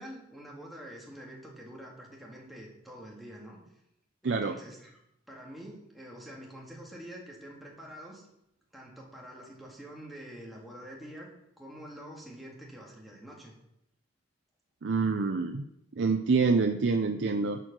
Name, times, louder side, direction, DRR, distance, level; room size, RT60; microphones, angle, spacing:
voice 1, 0.0-3.6 4.2-5.0 5.3-8.2 8.7-11.3 11.6-13.5, equal, ahead, -3 dB, 2.0 m, -46 dB
voice 2, 4.2-4.5 14.8-15.7 16.0-17.6, right 4 dB, 80° right, 5 dB, 0.5 m, -26 dB
11.0 x 4.6 x 6.0 m, 0.82 s
head